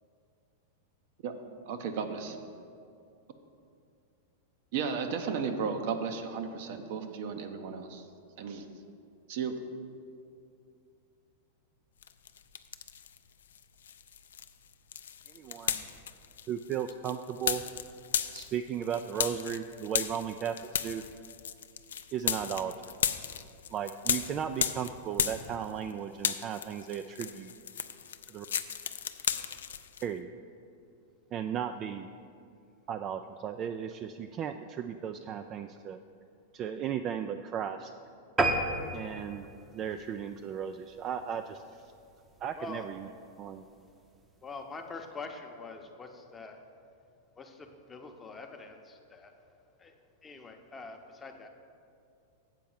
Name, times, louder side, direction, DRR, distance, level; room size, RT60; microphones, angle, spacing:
voice 1, 1.7-2.4 4.7-8.0 8.4-8.7 9.3-9.5, right 6 dB, 60° right, 6 dB, 0.7 m, -34 dB
sound 1, 12.0-13.2 13.5-25.9 26.2-30.1, left 8 dB, 80° left, 0.4 m, -35 dB
voice 2, 15.3-15.8 16.5-17.6 18.3-20.6 20.8-21.0 22.1-22.7 23.7-27.5 28.3-28.5 30.0-30.3 31.3-32.1 32.9-36.0 36.5-37.9 38.9-39.5 39.7-41.8 42.4-43.1 43.4-43.6, right 8 dB, 35° right, 7 dB, 0.3 m, -35 dB
sound 2, 38.4-41.1 41.6-41.8 42.2-42.3 42.6-42.7 43.0-43.1, right 2 dB, 20° right, 0.7 m, -31 dB
voice 3, 44.4-46.6 47.4-49.3 49.8-51.5, left 3 dB, 20° left, 4 dB, 0.8 m, -45 dB
7.5 x 4.6 x 7.0 m, 2.5 s
hypercardioid pair, 105°, 0 cm